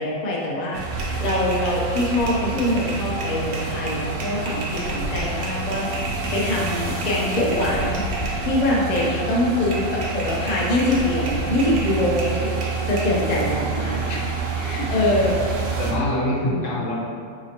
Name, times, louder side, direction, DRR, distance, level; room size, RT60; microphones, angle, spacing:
voice 1, 0.0-5.9 6.3-8.0 8.4-12.6 12.8-15.3, left 1 dB, 45° left, -4 dB, 0.6 m, -24 dB
sound 1, 0.7-8.4 9.0-9.2 9.7-13.1, right 2 dB, 55° right, 0.8 m, -35 dB
sound 2, 0.7-15.9, right 4 dB, 85° right, 1.0 m, -28 dB
voice 2, 13.5-14.1 15.0-15.3 15.8-16.9, left 1 dB, 80° left, -5 dB, 1.2 m, -26 dB
4.1 x 2.9 x 2.8 m, 2.2 s
omnidirectional pair, 1.3 m